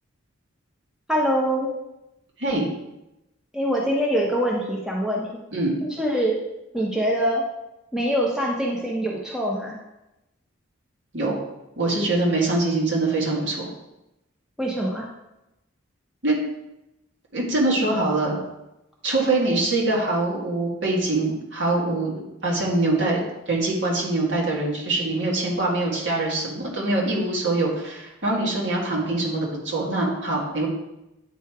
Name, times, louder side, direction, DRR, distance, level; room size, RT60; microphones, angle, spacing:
voice 1, 1.1-1.7 3.5-5.4 6.0-6.4 6.7-7.4 7.9-9.8 14.6-15.1, equal, 5° right, -3 dB, 0.7 m, -24 dB
voice 2, 11.8-13.7 16.2-16.4 17.3-18.3 19.0-30.7, right 2 dB, 60° right, -3 dB, 1.9 m, -24 dB
9.2 x 3.2 x 4.6 m, 0.93 s
head